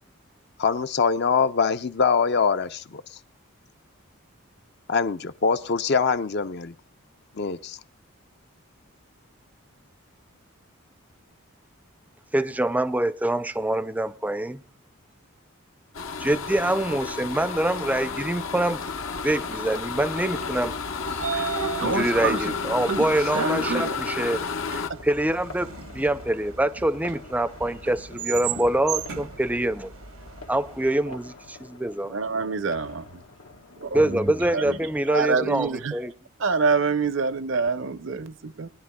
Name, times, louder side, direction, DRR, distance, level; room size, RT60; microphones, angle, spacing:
voice 1, 0.6-3.0 4.9-6.7 7.4-7.8, left 5 dB, 50° left, 0.6 m, -23 dB
voice 2, 12.3-14.6 16.2-18.8 19.2-20.7 21.3-21.5 21.8-24.4 24.7-29.9 30.5-32.2 33.9-36.1, right 1 dB, 5° right, 0.4 m, -25 dB
sound 1, 15.9-24.9, left 5 dB, 75° left, 1.0 m, -31 dB
sound 2, 16.5-35.7, left 4 dB, 90° left, 2.0 m, -48 dB
Train / Sliding door, 20.7-30.8, right 4 dB, 90° right, 1.2 m, -32 dB
voice 3, 32.1-33.0 33.8-34.2 34.5-34.8 35.1-35.9 36.4-38.7, right 4 dB, 60° right, 0.6 m, -26 dB
22.0 x 10.0 x 2.3 m
head